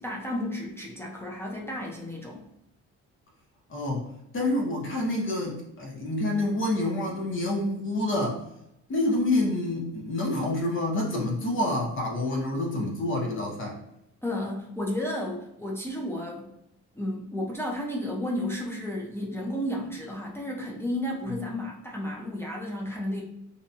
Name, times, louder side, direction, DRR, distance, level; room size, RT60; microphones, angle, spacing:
voice 1, 0.0-2.4 14.2-16.5 17.0-23.2, left 1 dB, 10° left, -3 dB, 0.5 m, -32 dB
voice 2, 3.7-4.1 4.3-8.4 8.9-13.8 21.3-21.4, left 1 dB, 40° left, -1 dB, 0.7 m, -27 dB
2.7 x 2.1 x 2.7 m, 0.81 s
cardioid pair, 90°, 30 cm